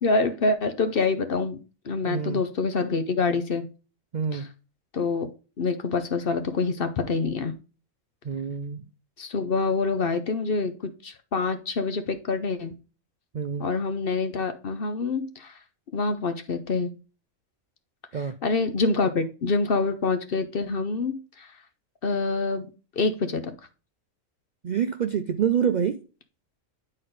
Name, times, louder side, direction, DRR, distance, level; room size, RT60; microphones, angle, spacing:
voice 1, 0.0-1.6 1.8-3.6 4.3-4.4 4.9-5.3 5.6-7.5 9.2-10.7 11.0-12.7 13.6-15.6 15.9-16.9 18.4-21.5 22.0-22.7 23.0-23.5, left 4 dB, 50° left, 0.8 m, -26 dB
voice 2, 2.0-2.4 4.1-4.5 8.2-8.9 13.3-13.7 18.1-18.4 24.6-26.0, right 7 dB, 90° right, 0.4 m, -27 dB
9.5 x 4.3 x 3.8 m
omnidirectional pair, 1.4 m